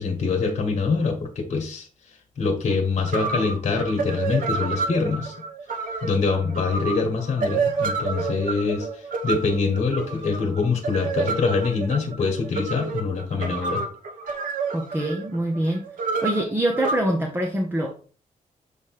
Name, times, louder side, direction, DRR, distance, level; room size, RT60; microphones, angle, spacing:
voice 1, 0.0-1.9 2.4-5.3 6.0-13.8, left 4 dB, 55° left, 3 dB, 1.5 m, -24 dB
sound 1, 2.7-2.8 3.1-17.0, right 4 dB, 90° right, 1.1 m, -29 dB
voice 2, 14.7-15.8 16.2-18.0, right 1 dB, 15° right, 2 dB, 0.8 m, -25 dB
7.2 x 3.3 x 4.6 m, 0.40 s
wide cardioid pair, 155°, 14 cm